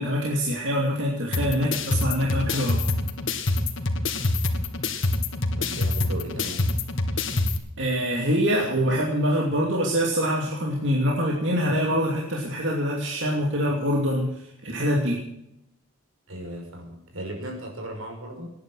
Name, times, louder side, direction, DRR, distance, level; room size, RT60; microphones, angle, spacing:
voice 1, 0.0-2.8 7.8-15.2, equal, 60° right, -2 dB, 2.7 m, -24 dB
sound 1, 1.3-7.6, left 2 dB, 65° left, 1.8 m, -26 dB
voice 2, 5.6-6.7 16.3-18.5, right 1 dB, 80° right, 2 dB, 5.5 m, -36 dB
19.0 x 10.0 x 6.3 m, 0.82 s
head